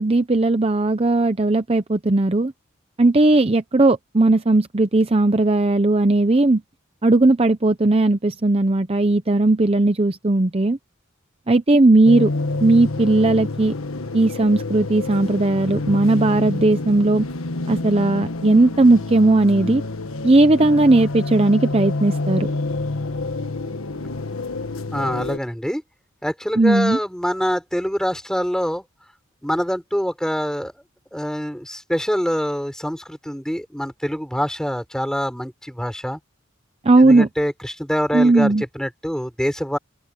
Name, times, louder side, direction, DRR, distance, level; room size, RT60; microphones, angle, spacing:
voice 1, 0.0-2.5 3.0-6.6 7.0-10.8 11.5-12.3 12.6-13.7 14.1-17.3 17.7-19.8 20.2-22.5 26.6-27.0 36.8-37.3 38.1-38.6, right 2 dB, 30° right, 0.7 m, -17 dB
sound 1, 12.1-25.4, left 2 dB, 85° left, 1.5 m, -28 dB
voice 2, 24.9-25.8 26.2-28.8 29.4-30.7 31.1-36.2 37.0-39.8, equal, 5° left, 6.2 m, -25 dB
open air
head